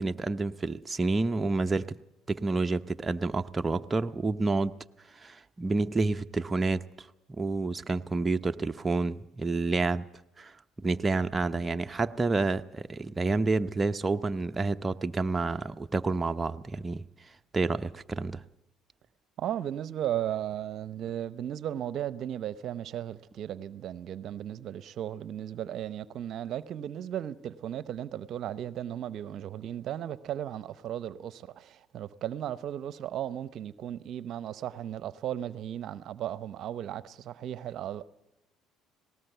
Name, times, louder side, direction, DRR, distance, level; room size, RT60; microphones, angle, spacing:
voice 1, 0.0-2.0 2.3-4.7 5.1-7.1 7.4-10.1 10.4-10.6 10.8-18.4, right 3 dB, 25° right, 0.7 m, -29 dB
voice 2, 19.4-38.1, right 11 dB, 60° right, 0.8 m, -36 dB
19.0 x 18.5 x 8.0 m
hypercardioid pair, 70°, 0 cm